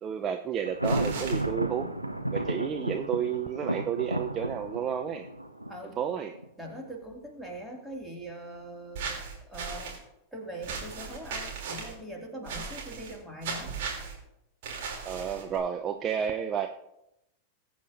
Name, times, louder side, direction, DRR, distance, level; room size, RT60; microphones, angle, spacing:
voice 1, 0.0-1.9 2.3-5.3 6.0-6.3 15.0-16.7, right 8 dB, 30° right, 6 dB, 0.5 m, -31 dB
Thunder, 0.7-6.5, right 1 dB, 90° right, 0.6 m, -33 dB
sound 1, 0.8-1.4 8.9-10.0 10.6-11.9 12.5-13.1 13.4-14.1 14.6-15.6, right 5 dB, 50° right, 3.0 m, -37 dB
voice 2, 6.6-9.9 10.3-13.7, right 1 dB, 5° right, -1 dB, 2.3 m, -42 dB
20.5 x 8.5 x 2.6 m, 0.85 s
figure-of-eight pair, 90°, 0 cm